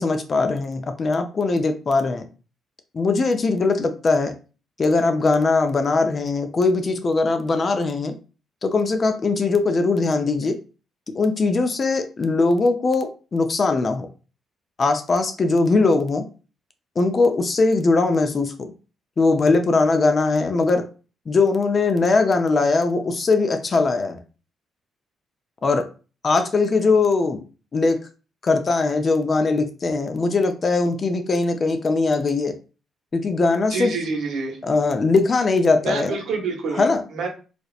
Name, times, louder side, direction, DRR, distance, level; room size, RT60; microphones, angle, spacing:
voice 1, 0.0-2.3 2.9-4.4 4.8-8.1 8.6-10.6 11.1-14.1 14.8-16.3 17.0-18.7 19.2-20.9 21.3-24.2 25.6-25.9 26.2-27.4 27.7-28.0 28.4-32.6 33.1-33.9 34.6-36.2 36.7-37.0, left 3 dB, 40° left, 7 dB, 0.4 m, -20 dB
voice 2, 33.7-34.6 35.8-37.3, right 4 dB, 75° right, 2 dB, 0.7 m, -27 dB
2.8 x 2.0 x 2.3 m, 0.34 s
cardioid pair, 90°, 0 cm